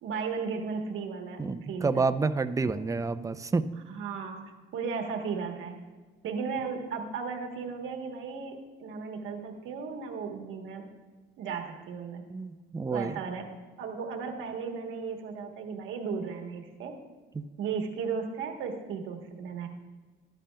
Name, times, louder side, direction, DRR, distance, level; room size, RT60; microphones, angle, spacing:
voice 1, 0.0-2.1 3.9-4.4 4.7-5.8 6.2-10.9 11.4-12.2 12.9-13.5 13.8-17.0 17.6-19.7, right 5 dB, 85° right, 3 dB, 1.2 m, -35 dB
voice 2, 1.4-3.7 12.3-13.1 17.4-17.5, right 4 dB, 15° right, 12 dB, 0.4 m, -29 dB
11.5 x 11.0 x 2.2 m, 1.4 s
cardioid pair, 90°, 20 cm